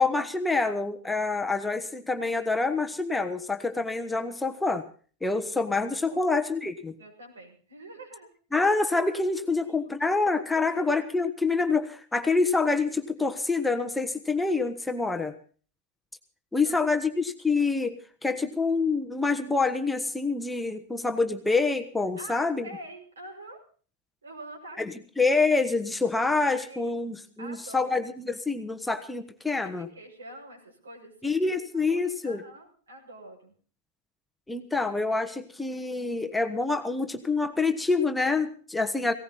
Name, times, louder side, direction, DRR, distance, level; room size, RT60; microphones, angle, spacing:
voice 1, 0.0-4.8 5.2-6.9 8.5-15.3 16.5-22.6 25.2-29.9 31.2-32.4 34.5-39.1, left 3 dB, 5° left, 6 dB, 1.3 m, -26 dB
voice 2, 5.9-6.3 7.0-8.3 9.8-9.9 10.5-10.9 16.6-16.9 18.3-18.5 22.2-23.6 24.2-25.0 26.6-26.9 27.4-28.0 29.6-33.5, right 1 dB, 70° right, 2 dB, 6.7 m, -46 dB
19.0 x 18.0 x 4.1 m, 0.43 s
figure-of-eight pair, 90°, 0 cm